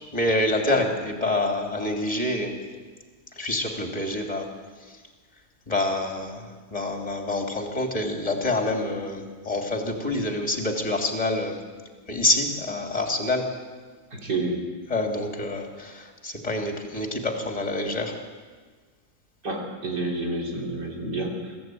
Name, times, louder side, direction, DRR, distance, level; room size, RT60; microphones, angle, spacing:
voice 1, 0.1-2.5 3.4-4.5 5.7-11.6 12.1-13.5 14.9-18.1, left 2 dB, 20° left, 2 dB, 3.0 m, -27 dB
voice 2, 14.1-14.6 19.4-21.6, right 2 dB, 80° right, -1 dB, 4.1 m, -29 dB
24.0 x 14.0 x 9.2 m, 1.5 s
omnidirectional pair, 1.8 m